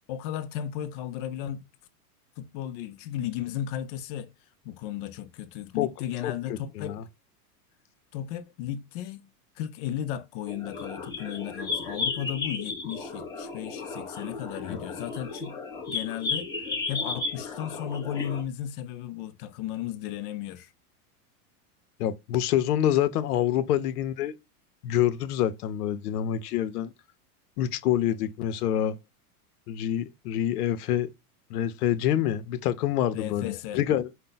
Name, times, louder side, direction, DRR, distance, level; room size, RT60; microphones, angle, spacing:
voice 1, 0.1-1.7 2.4-4.3 4.6-7.0 8.1-9.3 9.6-15.6 15.9-20.7 33.1-33.8, left 10 dB, 40° left, 0.5 m, -35 dB
sound 1, 10.5-18.4, left 4 dB, 10° left, 0.8 m, -34 dB
voice 2, 22.0-24.3 24.8-26.9 27.6-29.0 29.7-31.1 31.5-34.1, left 11 dB, 80° left, 0.8 m, -26 dB
5.3 x 2.1 x 3.9 m
supercardioid pair, 155°, 45 cm